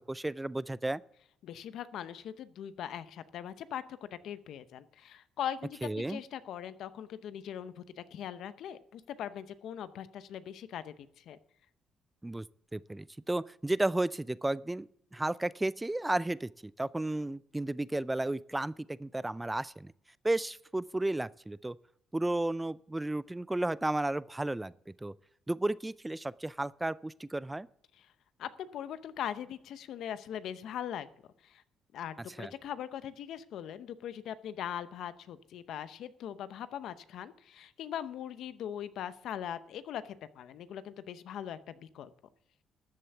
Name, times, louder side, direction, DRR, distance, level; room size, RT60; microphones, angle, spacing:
voice 1, 0.1-1.0 5.8-6.2 12.2-12.5 12.7-19.9 20.2-21.8 22.1-25.1 25.5-27.7 32.4-32.5, right 2 dB, 15° right, 0.4 m, -33 dB
voice 2, 1.4-11.4 28.0-28.1 28.4-31.1 31.4-31.6 31.9-42.1, left 9 dB, 75° left, 0.8 m, -41 dB
13.0 x 7.8 x 7.0 m
cardioid pair, 90°, 0 cm